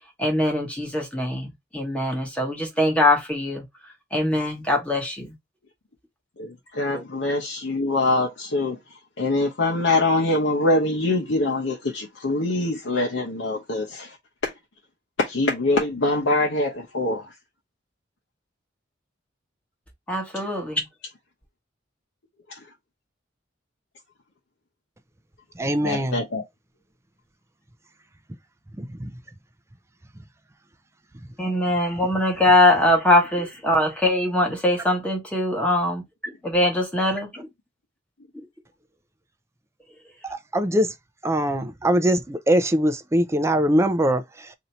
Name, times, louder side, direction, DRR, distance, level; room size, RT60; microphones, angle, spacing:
voice 1, 0.2-3.6 4.1-5.3 6.9-7.0 20.1-20.9 31.4-37.5, left 1 dB, 5° left, 1.1 m, -22 dB
voice 2, 6.4-8.8 9.2-14.2 14.4-14.5 15.2-17.3 22.5-22.6 25.8-26.4, left 2 dB, 70° left, 0.8 m, -24 dB
voice 3, 25.6-26.2 28.8-29.1 40.2-40.9 41.2-44.5, equal, 15° right, 0.4 m, -22 dB
2.8 x 2.6 x 4.2 m
head